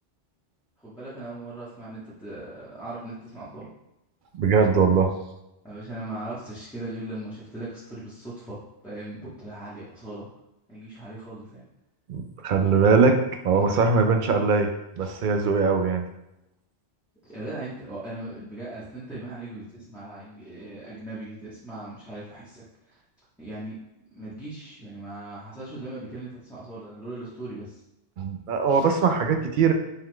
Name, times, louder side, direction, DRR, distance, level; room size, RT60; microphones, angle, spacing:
voice 1, 0.8-3.7 5.6-10.3 10.7-11.6 17.2-22.9 23.4-23.8 24.1-27.8, right 2 dB, 5° left, -12 dB, 0.9 m, -39 dB
voice 2, 4.4-5.1 12.1-16.0 28.2-29.7, right 5 dB, 60° right, 6 dB, 0.5 m, -21 dB
5.4 x 2.4 x 3.7 m, 0.88 s
omnidirectional pair, 1.2 m